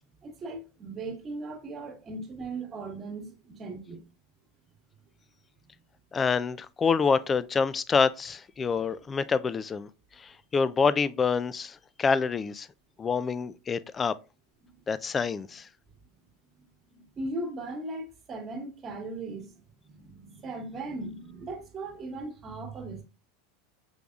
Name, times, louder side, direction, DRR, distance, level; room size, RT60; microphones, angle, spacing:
voice 1, 0.2-4.0 17.2-19.5 19.8-23.0, right 2 dB, 30° right, 1.3 m, -38 dB
voice 2, 6.1-9.9 10.2-12.7 13.0-14.1 14.9-15.7, left 5 dB, 25° left, 0.3 m, -27 dB
5.4 x 3.4 x 2.4 m
hypercardioid pair, 95°, 0 cm